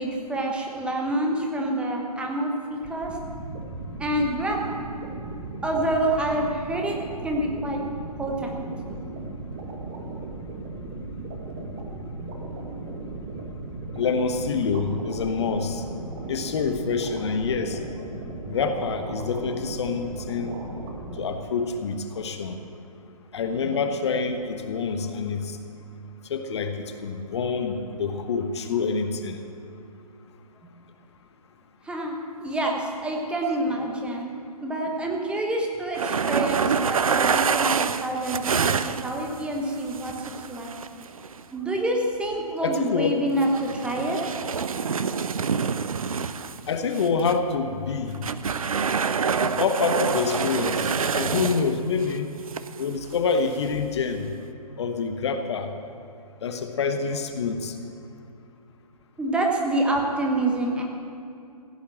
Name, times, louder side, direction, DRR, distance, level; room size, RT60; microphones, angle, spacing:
voice 1, 0.0-3.2 4.0-4.8 5.6-7.8 8.2-8.6 31.8-32.2 32.4-34.3 34.6-40.8 41.5-44.2 59.2-60.8, right 1 dB, 5° right, 0 dB, 1.2 m, -27 dB
sound 1, 2.8-21.3, right 2 dB, 25° right, 1.8 m, -36 dB
voice 2, 13.9-15.8 16.3-17.8 18.5-20.6 21.2-22.6 23.3-25.6 26.3-29.4 42.6-43.1 46.7-48.2 49.4-52.3 52.8-54.3 54.8-55.7 56.4-57.7, left 5 dB, 45° left, 7 dB, 1.1 m, -26 dB
sound 2, 36.0-39.4 39.9-41.4 43.3-46.6 46.9-47.4 48.1-51.8 52.0-52.1 52.5-52.8 53.1-53.4 54.3-54.4, right 6 dB, 60° right, 0.7 m, -26 dB
16.0 x 9.2 x 7.6 m, 2.6 s
figure-of-eight pair, 130°, 20 cm